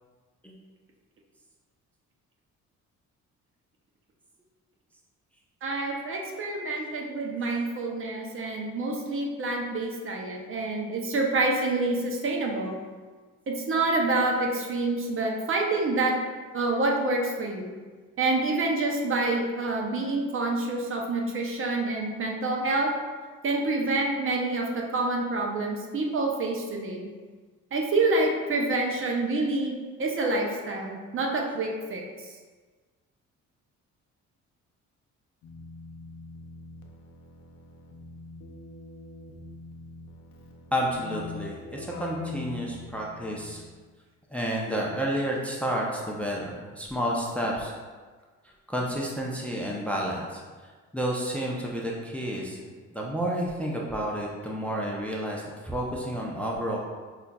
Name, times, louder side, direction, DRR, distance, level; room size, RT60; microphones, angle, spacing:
voice 1, 5.6-12.7 13.5-16.2 16.5-17.7 18.2-22.9 23.4-27.1 27.7-29.7 30.0-32.4, right 2 dB, 45° right, 0 dB, 0.6 m, -27 dB
Keyboard (musical), 35.4-43.8, left 3 dB, 80° left, 0.6 m, -43 dB
voice 2, 40.7-43.6 44.3-47.7 48.7-50.4 50.9-52.6 52.9-56.8, equal, 5° left, -3 dB, 0.5 m, -30 dB
5.4 x 2.4 x 2.2 m, 1.4 s
cardioid pair, 90°, 30 cm